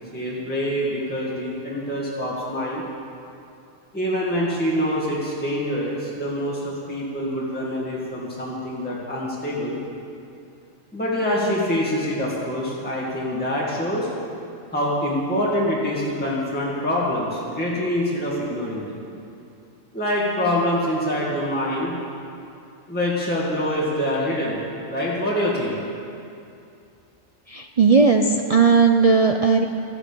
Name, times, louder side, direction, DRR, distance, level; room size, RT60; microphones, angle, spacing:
voice 1, 0.1-2.8 3.9-9.8 10.9-14.1 14.7-19.0 19.9-21.9 22.9-24.6 24.9-25.8, equal, 5° left, -6 dB, 2.1 m, -25 dB
voice 2, 27.5-29.7, right 5 dB, 50° right, 4 dB, 0.4 m, -17 dB
13.5 x 11.0 x 6.9 m, 2.6 s
omnidirectional pair, 1.3 m